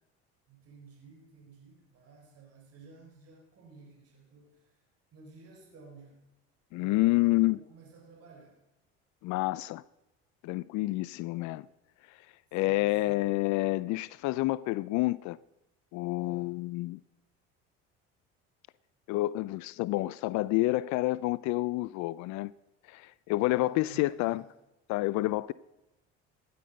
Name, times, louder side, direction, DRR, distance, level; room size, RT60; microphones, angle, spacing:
voice 1, 0.5-4.8 5.1-6.2 6.8-8.6 12.6-13.3 16.2-16.6 23.6-24.5, right 4 dB, 50° right, 4.3 m, -54 dB
voice 2, 6.7-7.6 9.2-9.8 10.4-11.7 12.1-12.2 12.5-15.4 15.9-17.0 19.1-22.5 22.9-24.4 24.9-25.5, left 19 dB, 70° left, 0.5 m, -29 dB
16.0 x 11.0 x 5.2 m
supercardioid pair, 90°, 30 cm